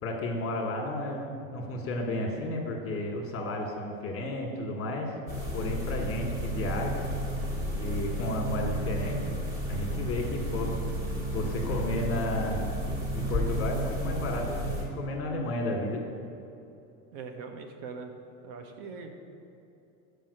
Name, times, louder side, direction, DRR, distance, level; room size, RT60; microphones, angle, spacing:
voice 1, 0.0-5.2 5.5-7.0 7.8-9.2 9.7-10.7 11.3-12.6 13.1-16.0, left 1 dB, 35° left, 1 dB, 1.4 m, -32 dB
sound 1, 5.3-14.9, equal, 35° right, 1.7 m, -32 dB
voice 2, 17.1-18.1 18.4-19.2, right 5 dB, 55° right, 5 dB, 0.9 m, -41 dB
5.6 x 5.2 x 6.4 m, 2.8 s
supercardioid pair, 105°, 41 cm